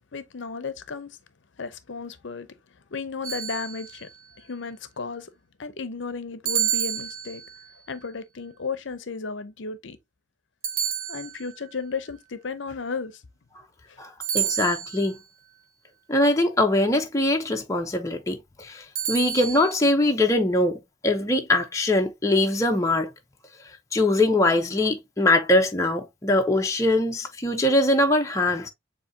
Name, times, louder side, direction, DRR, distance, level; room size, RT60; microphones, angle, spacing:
voice 1, 0.1-1.2 1.6-2.5 2.9-4.1 4.4-5.3 5.6-7.4 7.9-10.0 11.1-13.2 13.9-14.0, left 4 dB, 65° left, 0.6 m, -34 dB
sound 1, 3.2-4.2 6.5-7.7 10.6-11.7 14.2-15.2 19.0-19.7, right 9 dB, 85° right, 1.0 m, -29 dB
voice 2, 14.0-15.2 16.1-18.8 19.1-23.1 23.9-28.7, left 1 dB, 15° left, 0.6 m, -22 dB
7.3 x 2.7 x 2.6 m
head